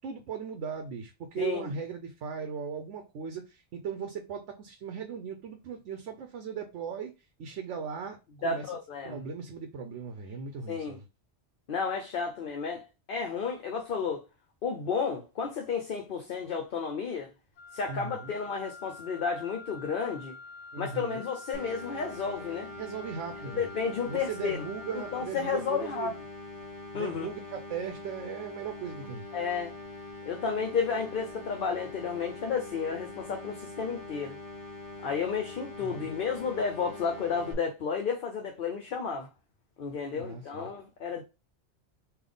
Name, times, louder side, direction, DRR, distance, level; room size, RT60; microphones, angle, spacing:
voice 1, 0.0-7.1 7.4-8.2 8.4-8.7 9.0-11.0 17.9-18.4 20.7-21.3 22.8-23.7 24.1-26.1 26.9-29.3 35.8-36.2 40.1-40.7, right 6 dB, 85° right, 1.0 m, -38 dB
voice 2, 1.4-1.7 8.4-9.2 10.7-11.0 11.7-14.2 14.6-17.3 17.7-20.3 20.8-22.7 23.6-24.6 25.1-26.1 26.9-27.3 29.3-29.7 30.3-34.4 35.0-39.3 39.8-41.2, left 5 dB, 55° left, 0.8 m, -32 dB
Wind instrument woodwind instrument, 17.6-25.3, left 3 dB, 80° left, 0.9 m, -47 dB
sound 1, 21.5-37.5, left 2 dB, 20° left, 0.8 m, -44 dB
3.5 x 2.6 x 3.8 m
omnidirectional pair, 1.2 m